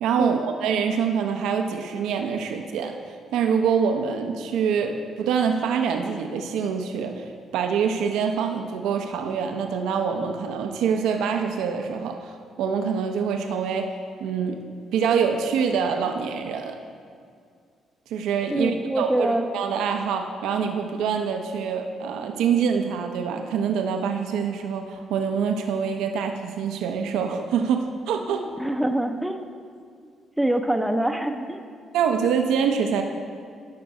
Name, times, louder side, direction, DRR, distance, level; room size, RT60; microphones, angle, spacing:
voice 1, 0.0-3.0 3.3-13.9 14.2-14.6 14.9-16.8 18.1-28.5 31.9-33.0, right 6 dB, 90° right, 5 dB, 0.5 m, -25 dB
voice 2, 18.5-19.5 28.6-29.4 30.4-31.6, right 1 dB, 5° right, 6 dB, 0.5 m, -24 dB
12.0 x 5.2 x 4.7 m, 2.2 s
cardioid pair, 90°, 0 cm